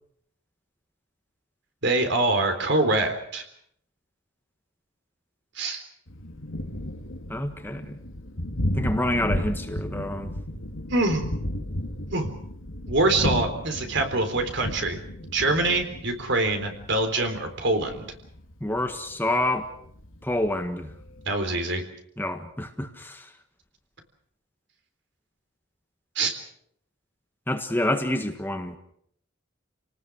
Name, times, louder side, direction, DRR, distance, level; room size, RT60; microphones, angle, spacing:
voice 1, 1.8-3.4 5.6-5.8 10.9-11.2 12.1-12.3 12.9-15.0 15.3-18.1 21.3-21.8 26.2-26.3, right 2 dB, 60° right, 6 dB, 3.8 m, -24 dB
Thunder, 6.1-21.4, left 1 dB, 90° left, 2.5 m, -34 dB
voice 2, 7.3-8.0 8.7-10.3 18.6-19.7 20.2-20.9 22.2-23.3 27.5-28.8, left 1 dB, 10° left, 6 dB, 1.6 m, -28 dB
29.0 x 19.0 x 6.4 m, 0.68 s
head